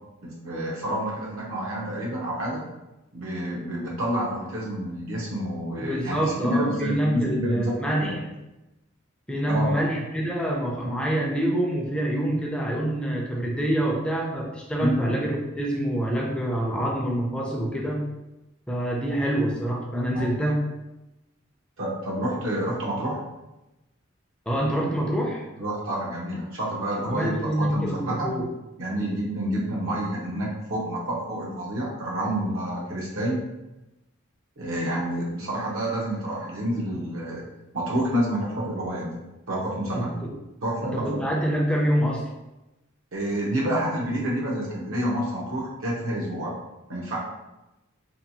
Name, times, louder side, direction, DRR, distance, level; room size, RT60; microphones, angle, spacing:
voice 1, 0.2-2.6 3.1-7.7 8.0-8.1 9.5-9.8 14.8-15.1 20.1-20.3 21.8-23.2 25.6-28.3 28.8-33.4 34.6-37.5 37.7-39.2 39.5-40.1 40.6-41.2 43.1-46.6 46.9-47.2, right 1 dB, 70° right, -4 dB, 0.6 m, -28 dB
voice 2, 5.8-8.2 9.3-18.0 18.7-20.6 24.5-25.4 27.0-28.5 39.9-40.3 40.8-42.3, right 1 dB, 5° left, -1 dB, 0.4 m, -26 dB
2.7 x 2.2 x 2.7 m, 0.98 s
head